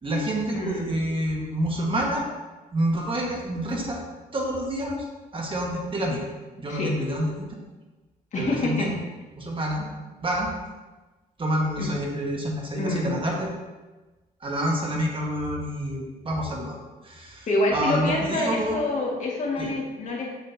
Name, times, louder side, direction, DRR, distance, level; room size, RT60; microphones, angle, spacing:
voice 1, 0.0-2.3 2.7-4.0 4.3-5.0 5.3-6.3 6.6-7.5 8.4-8.9 9.3-9.8 10.2-10.5 11.4-13.5 14.4-16.7 17.0-18.8 19.6-19.7, right 1 dB, 35° right, -1 dB, 1.7 m, -28 dB
voice 2, 0.5-0.9 6.7-6.9 8.3-8.9 11.8-11.9 12.8-13.1 17.5-20.3, left 2 dB, 50° left, -2 dB, 2.1 m, -26 dB
8.2 x 7.6 x 2.9 m, 1.2 s
cardioid pair, 100°, 16 cm